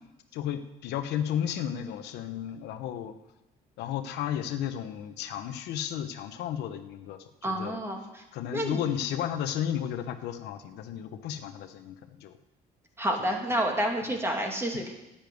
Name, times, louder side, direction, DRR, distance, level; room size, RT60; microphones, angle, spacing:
voice 1, 0.3-3.1 3.8-7.8 8.3-12.3 13.2-13.3 14.7-14.8, left 10 dB, 85° left, 8 dB, 1.1 m, -33 dB
voice 2, 7.4-8.2 8.5-8.8 13.0-14.9, right 1 dB, 15° right, 1 dB, 2.6 m, -29 dB
10.0 x 8.9 x 9.4 m, 0.96 s
cardioid pair, 110°, 17 cm